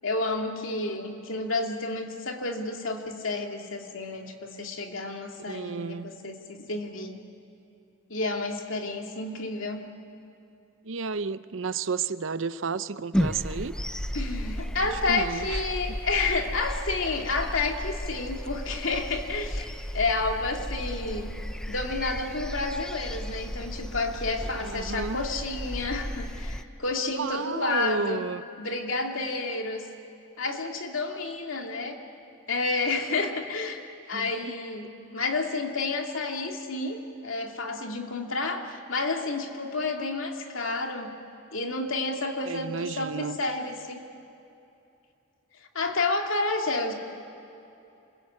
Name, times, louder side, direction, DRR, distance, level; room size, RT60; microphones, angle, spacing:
voice 1, 0.0-7.2 8.1-9.8 14.1-21.3 21.7-28.2 28.6-29.8 30.4-32.0 32.5-33.8 34.1-41.1 41.5-44.0 45.7-46.9, left 3 dB, 80° left, 2 dB, 2.5 m, -30 dB
voice 2, 5.5-6.1 10.8-13.7 14.8-16.0 24.6-25.2 27.1-28.4 34.1-34.5 42.5-43.4, right 5 dB, 70° right, 14 dB, 0.7 m, -32 dB
sound 1, 13.1-26.6, equal, 5° left, 0.7 m, -34 dB
27.5 x 21.0 x 8.6 m, 2.7 s
head